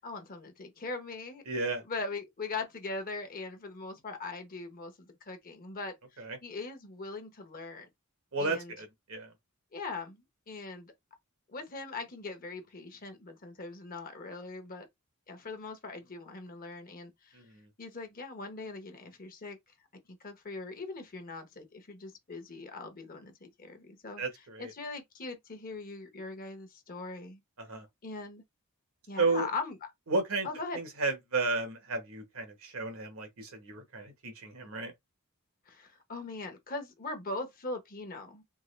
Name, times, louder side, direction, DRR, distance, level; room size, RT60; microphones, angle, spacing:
voice 1, 0.0-1.4 1.8-7.9 8.4-8.7 9.7-10.9 11.5-14.9 15.3-17.4 17.8-19.6 20.1-24.2 24.6-27.4 28.0-28.4 29.1-29.8 30.4-30.8 35.7-38.4, left 3 dB, 40° left, 0.9 m, -41 dB
voice 2, 1.5-1.8 6.2-6.4 8.3-9.3 17.3-17.7 24.2-24.7 27.6-27.9 29.2-29.5 30.1-30.5 30.7-34.9, right 3 dB, 70° right, 1.2 m, -33 dB
3.7 x 2.3 x 3.2 m
head